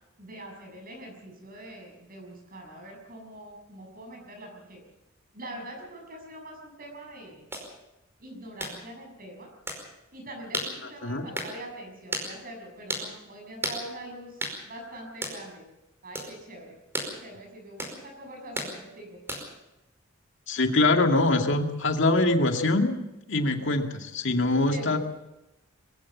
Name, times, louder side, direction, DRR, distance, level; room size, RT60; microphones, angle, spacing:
voice 1, 0.2-4.8 5.3-7.5 8.2-9.5 10.1-15.6 16.0-16.7 17.2-19.2 24.7-25.0, right 1 dB, 45° right, 2 dB, 6.7 m, -43 dB
sound 1, 7.5-7.7 8.6-8.8 9.7-9.8 10.5-10.7 11.3-11.5 12.1-12.3 12.9-13.1 13.6-13.8 14.4-14.6 15.2-15.4 16.1-16.3 16.9-17.1 17.8-18.0 18.5-18.7 19.3-19.6, equal, 10° right, 5.0 m, -32 dB
voice 2, 20.5-23.0 23.3-25.0, left 2 dB, 65° left, 5 dB, 2.2 m, -23 dB
22.5 x 15.5 x 7.4 m, 0.95 s
head